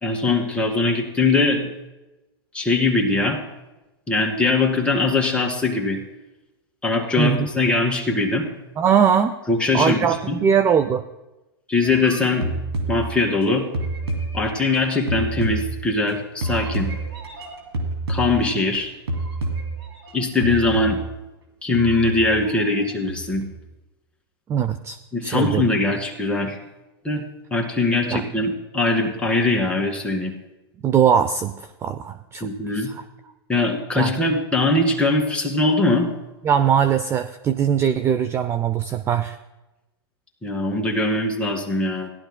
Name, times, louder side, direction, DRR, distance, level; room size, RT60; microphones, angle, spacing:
voice 1, 0.0-1.7 2.5-3.4 4.1-6.0 6.8-8.5 9.5-10.4 11.7-12.5 12.9-13.7 14.3-16.9 18.1-18.9 20.1-21.0 21.6-23.5 25.1-26.6 27.0-27.2 27.5-30.3 32.4-32.9 33.5-36.1 40.4-42.1, left 3 dB, 10° left, -1 dB, 2.1 m, -21 dB
voice 2, 7.2-7.5 8.8-9.4 9.7-10.2 10.4-11.0 24.5-25.6 28.1-28.2 30.8-33.0 34.0-34.1 36.4-39.4, right 8 dB, 20° right, 11 dB, 0.4 m, -21 dB
sound 1, 11.8-13.4 13.7-16.1 16.4-18.8 19.1-20.1 20.4-21.2 21.7-22.8 23.1-23.6, right 2 dB, 90° right, 2.6 m, -29 dB
17.5 x 11.5 x 2.2 m, 1.0 s
hypercardioid pair, 120°, 13 cm